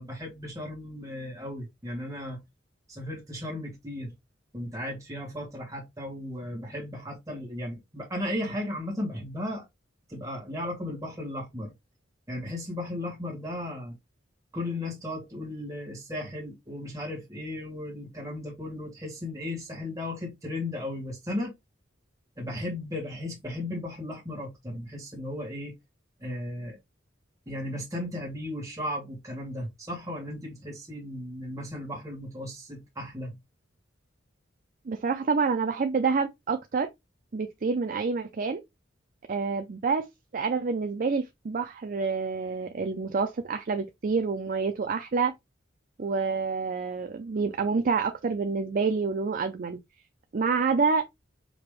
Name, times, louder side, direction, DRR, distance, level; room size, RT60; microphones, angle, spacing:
voice 1, 0.0-2.4 2.9-4.1 4.5-9.6 10.1-11.7 12.3-13.9 14.5-21.5 22.4-25.7 26.2-26.8 27.5-33.3, left 1 dB, 15° right, 1.5 m, -35 dB
voice 2, 34.9-36.9 37.3-38.6 39.3-40.1 40.3-45.3 46.0-49.8 50.3-51.1, right 4 dB, 45° right, 0.5 m, -27 dB
5.1 x 2.9 x 3.1 m
head